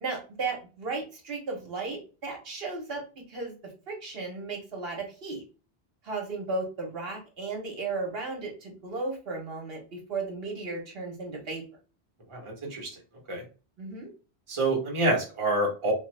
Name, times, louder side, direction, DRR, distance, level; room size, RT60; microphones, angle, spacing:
voice 1, 0.0-3.0 3.3-3.5 3.9-5.4 6.0-11.6 13.8-14.1, right 3 dB, 65° right, 1 dB, 1.1 m, -35 dB
voice 2, 12.3-12.9 13.3-13.4 14.5-15.9, right 2 dB, 30° right, -1 dB, 0.9 m, -27 dB
3.0 x 2.3 x 3.2 m, 0.35 s
omnidirectional pair, 1.1 m